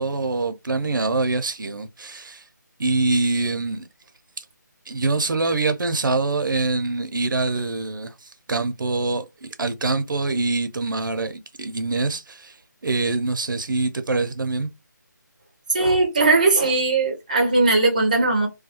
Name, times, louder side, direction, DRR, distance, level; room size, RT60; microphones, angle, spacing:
voice 1, 0.0-2.4 2.8-3.9 4.4-4.5 4.9-12.6 12.8-14.7, right 3 dB, 85° right, 0.6 m, -24 dB
voice 2, 15.7-18.5, right 3 dB, 25° right, 0.4 m, -19 dB
2.3 x 2.2 x 2.8 m
figure-of-eight pair, 175°, 10 cm